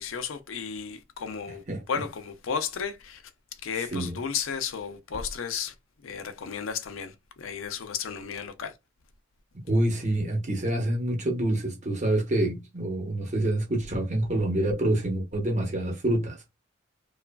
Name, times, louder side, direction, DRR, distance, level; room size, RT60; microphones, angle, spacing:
voice 1, 0.0-3.2 3.6-5.7 6.0-8.7, left 6 dB, 85° left, 0.5 m, -33 dB
voice 2, 9.7-16.4, right 1 dB, 35° right, 0.9 m, -26 dB
3.0 x 2.4 x 2.2 m
head